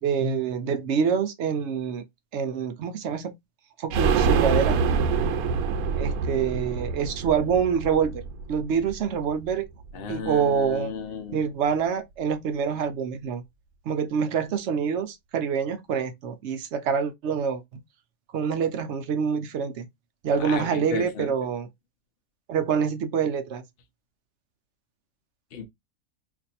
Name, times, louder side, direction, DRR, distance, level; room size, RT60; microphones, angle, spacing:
voice 1, 0.0-2.0 2.3-3.3 3.8-4.8 6.0-8.2 8.5-9.6 10.1-10.9 11.3-13.4 13.9-17.6 18.3-19.9 20.2-21.7 22.5-23.6, right 6 dB, 65° right, 0.7 m, -26 dB
sound 1, 3.9-9.5 9.8-9.9 10.2-10.3, right 5 dB, 85° right, 1.1 m, -26 dB
voice 2, 9.9-11.4 20.3-21.3 25.5-25.7, left 6 dB, 55° left, 0.7 m, -34 dB
2.6 x 2.5 x 4.1 m
omnidirectional pair, 1.5 m